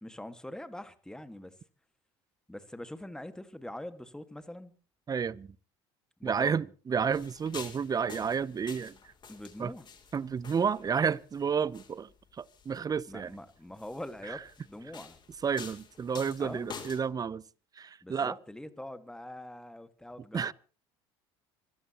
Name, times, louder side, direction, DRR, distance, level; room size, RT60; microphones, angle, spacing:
voice 1, 0.0-1.6 2.5-4.7 6.2-6.6 9.3-9.8 13.1-15.2 16.4-16.7 18.0-20.5, left 1 dB, 5° left, 1.8 m, -43 dB
voice 2, 5.1-5.5 6.2-9.0 9.6-9.7 10.1-13.3 14.3-14.4 15.4-17.4 17.8-18.4 20.3-20.5, right 6 dB, 25° right, 0.7 m, -31 dB
sound 1, 7.1-17.0, left 6 dB, 35° left, 3.4 m, -49 dB
25.0 x 15.5 x 3.0 m
hypercardioid pair, 75°, 14 cm